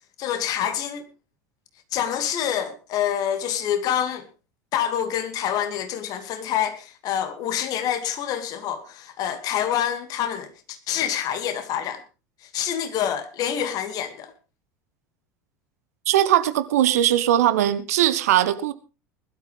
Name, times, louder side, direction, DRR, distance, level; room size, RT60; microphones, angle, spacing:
voice 1, 0.2-1.0 1.9-4.3 4.7-12.0 12.5-14.3, left 9 dB, 45° left, 2.4 m, -27 dB
voice 2, 16.1-18.7, right 12 dB, 65° right, 1.2 m, -20 dB
20.0 x 12.5 x 3.5 m
figure-of-eight pair, 70°, 9 cm